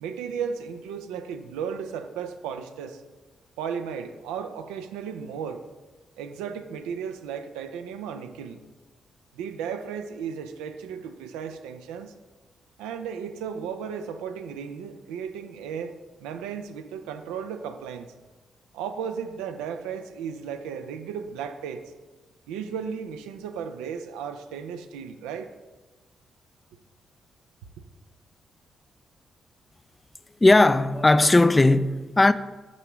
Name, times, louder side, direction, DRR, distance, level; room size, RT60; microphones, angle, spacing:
voice 1, 0.0-3.0 3.6-5.6 6.2-8.6 9.3-12.1 12.8-18.1 18.7-21.8 22.5-25.5, right 7 dB, 90° right, 0.4 m, -35 dB
voice 2, 30.4-32.3, left 2 dB, 25° left, 0.3 m, -17 dB
6.7 x 4.7 x 3.0 m
supercardioid pair, 45°, 0 cm